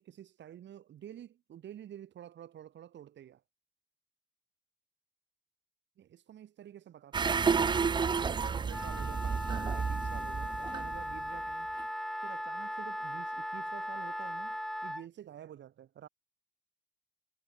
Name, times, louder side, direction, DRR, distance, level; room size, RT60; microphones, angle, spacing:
voice 1, 0.0-3.4 6.0-11.7 12.2-16.1, right 10 dB, 85° right, 3.6 m, -50 dB
sound 1, 7.1-11.4 11.8-11.9, right 5 dB, 25° right, 0.4 m, -31 dB
Wind instrument woodwind instrument, 8.7-15.1, equal, ahead, 2.1 m, -38 dB
wide cardioid pair, 165°, 18 cm